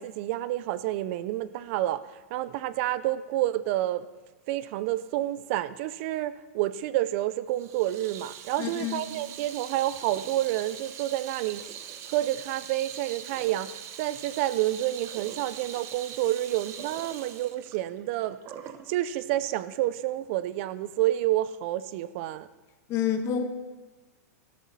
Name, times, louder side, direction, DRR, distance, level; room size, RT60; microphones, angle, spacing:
voice 1, 0.0-4.1 4.5-11.8 12.1-18.4 18.9-22.5, right 14 dB, 50° right, 15 dB, 0.5 m, -29 dB
Water tap faucet / Sink (filling or washing), 7.5-18.9, right 9 dB, 35° right, 0.9 m, -42 dB
voice 2, 8.6-9.0 22.9-23.4, left 8 dB, 35° left, 7 dB, 1.3 m, -28 dB
13.5 x 12.5 x 4.2 m, 1.2 s
hypercardioid pair, 135°, 9 cm